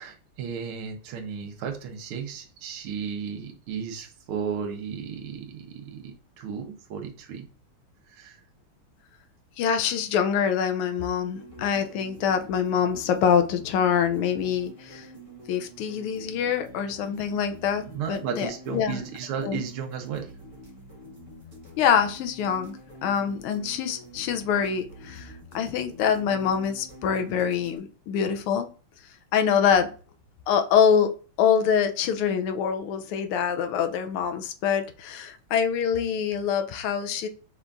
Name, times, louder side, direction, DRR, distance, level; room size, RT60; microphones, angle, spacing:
voice 1, 0.0-7.5 8.1-8.4 17.9-20.3, right 7 dB, 80° right, 3 dB, 1.7 m, -34 dB
voice 2, 9.6-15.1 15.5-19.0 19.4-19.6 21.8-28.7 29.3-29.9 30.5-37.3, left 7 dB, 90° left, 7 dB, 1.5 m, -25 dB
sound 1, 11.3-27.8, equal, 20° right, 1.2 m, -47 dB
5.6 x 3.4 x 2.5 m, 0.37 s
omnidirectional pair, 2.3 m